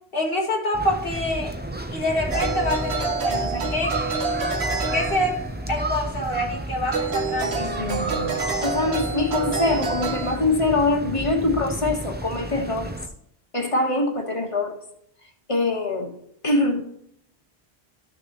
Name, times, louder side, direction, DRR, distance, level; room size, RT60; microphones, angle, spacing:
voice 1, 0.1-1.5 1.9-4.0 4.9-5.4 5.7-8.4, left 1 dB, 65° left, -1 dB, 1.7 m, -26 dB
sound 1, 0.7-13.1, right 1 dB, 10° right, 0.6 m, -32 dB
sound 2, 2.3-5.7 6.9-10.4, right 4 dB, 85° right, 1.4 m, -28 dB
voice 2, 8.6-12.9 13.5-14.8 15.5-16.1 16.4-16.8, left 2 dB, 30° left, 3 dB, 1.4 m, -23 dB
13.5 x 6.6 x 3.0 m, 0.72 s
omnidirectional pair, 1.1 m